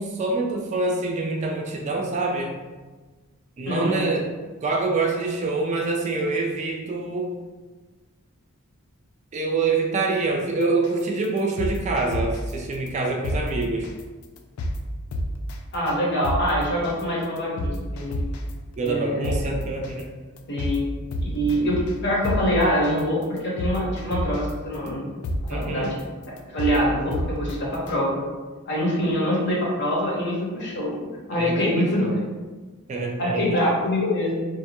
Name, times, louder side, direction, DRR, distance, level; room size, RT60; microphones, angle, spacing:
voice 1, 0.0-2.6 3.6-4.3 4.6-7.3 9.3-13.9 18.8-20.1 25.5-25.9 31.3-32.2 32.9-33.7, right 3 dB, 35° right, 1 dB, 0.3 m, -26 dB
voice 2, 3.7-4.0 15.7-18.2 18.8-19.5 20.5-20.8 21.2-25.1 25.5-25.9 26.5-28.2 28.7-32.1 33.2-34.4, equal, 55° left, -4 dB, 0.8 m, -24 dB
sound 1, 10.8-11.0 11.4-12.5 12.9-13.0 13.2-13.4 13.8-14.0 14.4-14.8 15.1-15.5 15.9-16.0 16.2-16.4 16.8-17.0 17.4-18.5 18.9-19.0 19.2-19.4 19.8-20.0 20.4-20.8 21.1-22.0 22.2-22.4 22.8-23.0 23.4-24.5 24.9-25.0 25.2-25.4 25.8-26.0 26.4-26.8 27.1-27.5 27.9-28.0, left 1 dB, 85° left, 0.3 m, -28 dB
2.5 x 2.2 x 2.8 m, 1.3 s
head